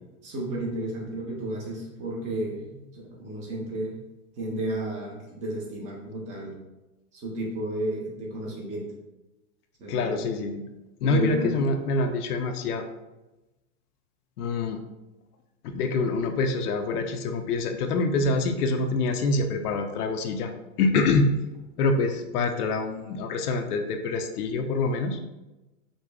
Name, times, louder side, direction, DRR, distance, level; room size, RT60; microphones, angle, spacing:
voice 1, 0.2-3.9 4.4-6.5 7.1-8.9 9.8-10.2 11.1-11.6, right 1 dB, 15° right, -2 dB, 0.5 m, -32 dB
voice 2, 9.9-10.6 11.0-12.8 14.4-14.8 15.6-20.5 20.8-21.3 21.8-25.2, left 3 dB, 85° left, 5 dB, 0.5 m, -25 dB
5.0 x 2.0 x 2.2 m, 1.0 s
hypercardioid pair, 140°, 44 cm